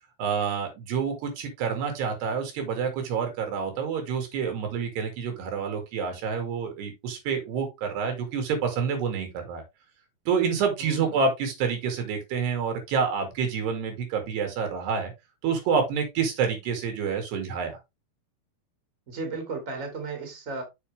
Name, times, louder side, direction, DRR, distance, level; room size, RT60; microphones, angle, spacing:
voice 1, 0.2-9.6 10.3-15.1 15.4-17.8, right 6 dB, 85° right, 4.2 m, -28 dB
voice 2, 10.8-11.2 19.1-20.6, right 3 dB, 20° right, 2.6 m, -35 dB
7.1 x 6.4 x 3.4 m
omnidirectional pair, 4.6 m